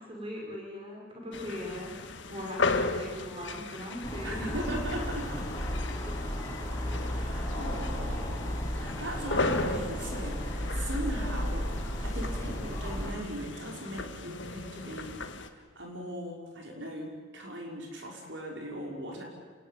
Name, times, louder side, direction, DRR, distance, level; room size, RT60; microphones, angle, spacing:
voice 1, 0.1-4.4, left 1 dB, 25° right, -1 dB, 6.0 m, -40 dB
sound 1, 1.3-15.5, left 3 dB, 65° left, 1.8 m, -36 dB
sound 2, 4.0-13.1, equal, 15° left, 6.1 m, -34 dB
voice 2, 4.2-5.5 6.9-11.7 12.0-15.1 15.5-19.2, right 1 dB, 65° right, 0 dB, 5.8 m, -39 dB
28.5 x 21.0 x 9.4 m, 1.5 s
head